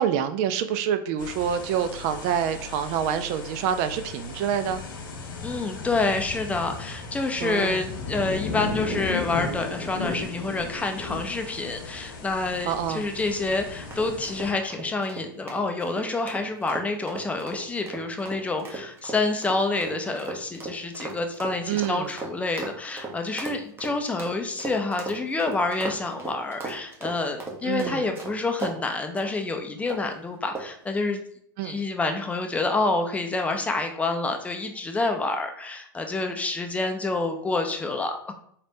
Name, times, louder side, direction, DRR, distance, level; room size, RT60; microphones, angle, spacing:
voice 1, 0.0-4.8 7.4-7.8 12.7-13.1 21.7-22.1 27.6-28.1 31.6-31.8, right 8 dB, 50° right, 10 dB, 0.4 m, -27 dB
sound 1, 1.2-14.5, left 3 dB, 75° left, 0.9 m, -36 dB
voice 2, 5.4-31.2 31.6-38.3, left 3 dB, 10° left, 5 dB, 0.5 m, -28 dB
sound 2, 13.9-28.8 29.2-29.4 29.9-30.1 30.5-30.8, right 3 dB, 20° right, 0.9 m, -37 dB
4.0 x 3.2 x 2.7 m, 0.65 s
hypercardioid pair, 115°, 12 cm